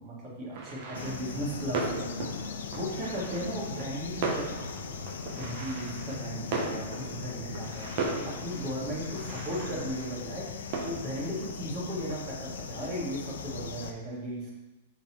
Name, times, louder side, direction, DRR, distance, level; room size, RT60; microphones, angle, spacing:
voice 1, 0.0-2.3 2.7-14.5, right 1 dB, 30° right, -5 dB, 2.0 m, -36 dB
sound 1, 0.5-14.0, right 3 dB, 50° right, 1.0 m, -38 dB
sound 2, 0.9-13.9, left 6 dB, 85° left, 0.5 m, -39 dB
5.9 x 4.1 x 4.4 m, 1.1 s
hypercardioid pair, 150°, 0 cm